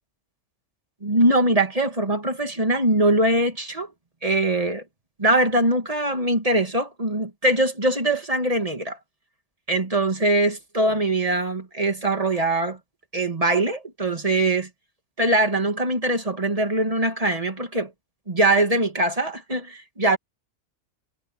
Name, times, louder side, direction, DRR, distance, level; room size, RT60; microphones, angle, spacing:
voice 1, 1.0-3.9 4.2-4.8 5.2-9.0 9.7-12.8 13.1-14.7 15.2-17.9 18.3-20.2, right 1 dB, 30° right, 2.2 m, -22 dB
omnidirectional pair, 1.3 m